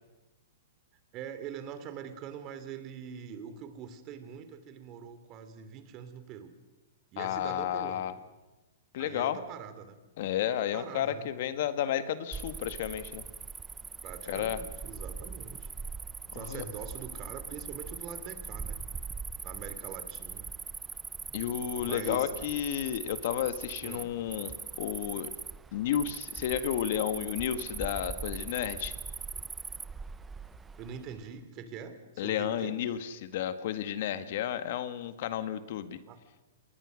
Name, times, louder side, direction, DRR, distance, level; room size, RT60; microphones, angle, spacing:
voice 1, 1.1-6.5 7.1-8.0 9.0-10.0 10.4-11.3 14.0-15.7 16.3-18.8 19.4-20.5 21.8-22.3 23.8-24.1 30.8-32.8 36.1-36.2, right 7 dB, 35° right, 10 dB, 3.0 m, -43 dB
voice 2, 7.2-8.1 8.9-9.4 10.2-13.2 14.3-14.6 16.3-16.6 21.3-25.3 25.7-28.9 32.2-36.0, left 10 dB, 55° left, 11 dB, 1.7 m, -32 dB
Cricket, 12.3-31.2, right 5 dB, 10° right, 0.7 m, -41 dB
27.0 x 20.5 x 6.5 m, 1.1 s
hypercardioid pair, 140°, 0 cm